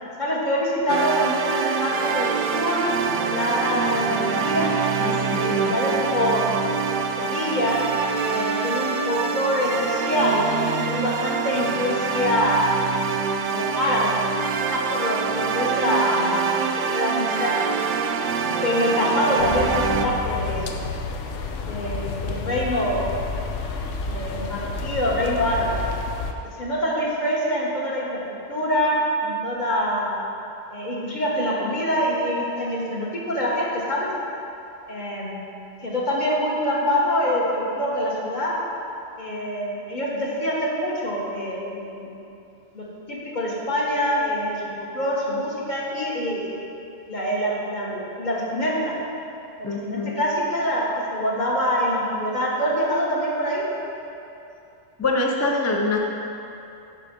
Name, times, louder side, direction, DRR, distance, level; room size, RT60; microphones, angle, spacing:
voice 1, 0.2-4.7 5.4-6.5 7.2-7.8 8.1-12.7 13.5-14.1 14.7-17.8 18.4-20.7 21.6-23.0 24.1-25.8 26.6-28.2 28.5-28.9 29.2-30.2 30.7-34.1 34.9-35.4 35.8-38.5 39.2-42.1 42.7-46.6 47.1-48.9 49.6-53.6, equal, 40° left, -5 dB, 1.5 m, -25 dB
sound 1, 0.9-20.1, right 5 dB, 60° right, 0.6 m, -25 dB
voice 2, 5.0-6.0 49.6-50.2 55.0-56.0, left 3 dB, 25° left, 0 dB, 0.3 m, -25 dB
sound 2, 19.4-26.3, left 4 dB, 85° left, 1.0 m, -30 dB
9.5 x 4.6 x 5.3 m, 2.8 s
omnidirectional pair, 1.2 m